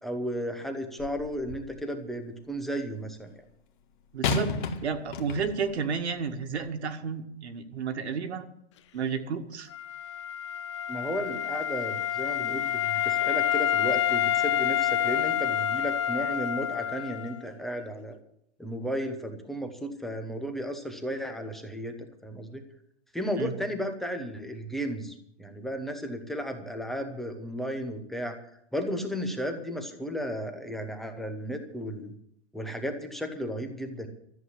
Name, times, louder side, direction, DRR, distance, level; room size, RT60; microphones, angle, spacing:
voice 1, 0.0-3.3 10.9-18.2 18.6-21.9 22.2-22.6 23.1-28.3 28.7-32.1 32.5-34.1, equal, ahead, 5 dB, 0.9 m, -34 dB
sound 1, 1.0-1.8 4.2-5.8 6.6-6.7, left 5 dB, 45° left, 1.7 m, -32 dB
voice 2, 4.1-4.6 4.8-8.5 8.9-9.7 23.4-23.5, right 6 dB, 70° right, 5 dB, 2.0 m, -31 dB
Wind instrument woodwind instrument, 9.7-17.5, left 10 dB, 25° left, 0.5 m, -28 dB
13.5 x 7.9 x 9.7 m, 0.72 s
hypercardioid pair, 155°, 34 cm